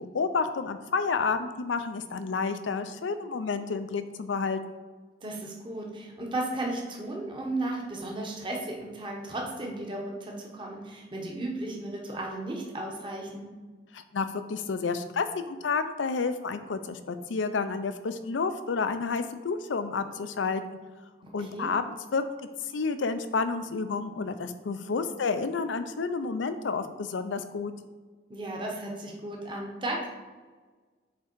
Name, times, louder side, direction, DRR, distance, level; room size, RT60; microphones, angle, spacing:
voice 1, 0.0-4.8 13.9-20.8 21.3-22.2 22.6-27.7, left 4 dB, 90° left, 10 dB, 0.5 m, -30 dB
voice 2, 5.2-13.5 21.2-21.7 28.3-30.1, right 1 dB, 25° right, -1 dB, 1.0 m, -35 dB
7.5 x 3.7 x 4.5 m, 1.4 s
head